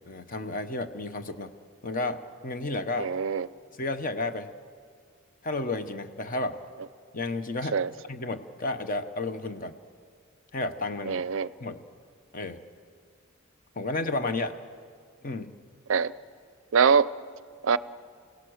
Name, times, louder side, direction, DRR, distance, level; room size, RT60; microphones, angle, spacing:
voice 1, 0.0-1.5 1.8-3.1 3.8-4.5 5.4-6.6 7.1-7.8 8.1-9.8 10.5-11.2 11.6-11.8 12.3-12.6 13.8-14.6 15.2-15.6, left 2 dB, 40° left, 9 dB, 0.9 m, -32 dB
voice 2, 3.0-3.5 7.7-7.9 11.1-11.5 15.9-16.1 16.7-17.1 17.6-17.8, right 6 dB, 65° right, 18 dB, 0.5 m, -23 dB
28.5 x 17.0 x 6.4 m, 2.1 s
head